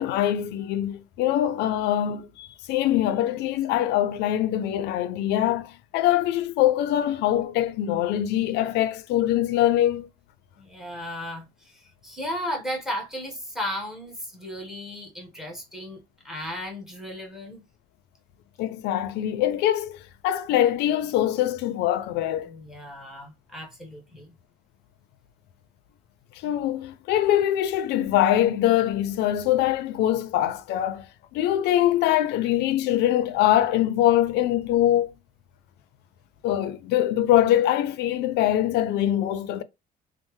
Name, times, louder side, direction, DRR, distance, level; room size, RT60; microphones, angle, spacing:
voice 1, 0.0-10.1 18.6-22.6 26.4-35.1 36.4-39.6, left 12 dB, 80° left, 0.4 m, -23 dB
voice 2, 10.6-17.6 22.5-24.4, equal, ahead, 1.2 m, -35 dB
3.1 x 2.0 x 3.0 m
cardioid pair, 110°, 17 cm